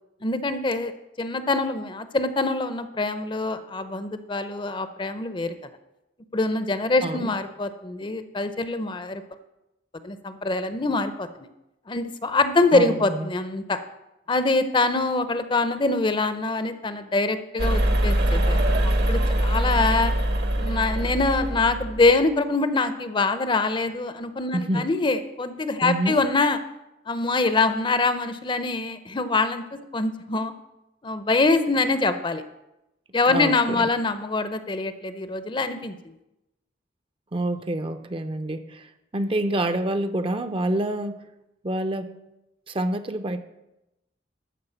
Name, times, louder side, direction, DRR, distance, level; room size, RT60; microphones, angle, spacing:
voice 1, 0.2-5.5 6.3-9.2 10.0-11.3 11.9-13.8 14.3-18.6 18.8-20.1 20.6-26.6 27.1-30.5 31.0-32.4 33.1-36.1, left 3 dB, 25° left, 11 dB, 0.6 m, -24 dB
voice 2, 7.0-7.3 12.7-13.3 24.5-24.9 25.8-26.2 33.3-33.9 37.3-41.2 41.6-42.1 42.7-43.4, right 1 dB, 30° right, 10 dB, 0.6 m, -27 dB
sound 1, 17.6-22.1, right 1 dB, 65° right, 1.3 m, -23 dB
13.0 x 4.7 x 7.9 m, 0.91 s
head